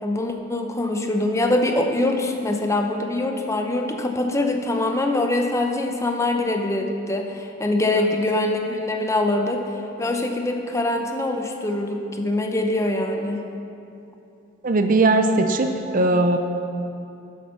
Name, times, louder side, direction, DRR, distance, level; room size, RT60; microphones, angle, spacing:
voice 1, 0.0-9.7 10.0-13.4, left 2 dB, 15° left, 3 dB, 0.6 m, -23 dB
voice 2, 14.6-16.4, right 2 dB, 40° right, 6 dB, 0.5 m, -19 dB
10.5 x 7.4 x 5.7 m, 2.7 s
head